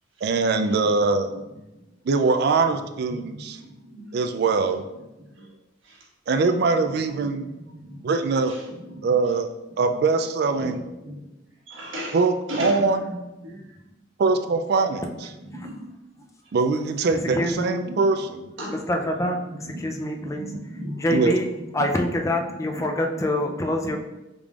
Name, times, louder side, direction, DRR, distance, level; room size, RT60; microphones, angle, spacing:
voice 1, 0.2-1.3 2.0-3.6 4.1-4.9 6.3-7.5 8.0-8.6 9.0-9.5 9.8-10.8 12.1-13.1 14.2-15.0 16.5-18.5 21.1-21.3, right 4 dB, 55° right, 8 dB, 0.4 m, -22 dB
voice 2, 3.1-4.0 5.2-5.5 5.8-6.0 7.1-8.1 8.5-8.6 8.9-9.2 10.6-11.3 11.7-12.2 12.5-13.2 13.4-13.8 15.5-15.8 16.2-16.3 17.3-17.5 17.8-18.2 18.6-18.8 19.6-21.1 21.7-21.9 22.6-22.8 23.1-23.3 23.9-24.0, equal, 90° right, -4 dB, 1.4 m, -36 dB
voice 3, 17.3-17.8 18.7-20.5 21.0-21.5 21.7-24.0, left 1 dB, 15° left, 3 dB, 0.4 m, -25 dB
4.9 x 3.6 x 2.4 m, 0.99 s
head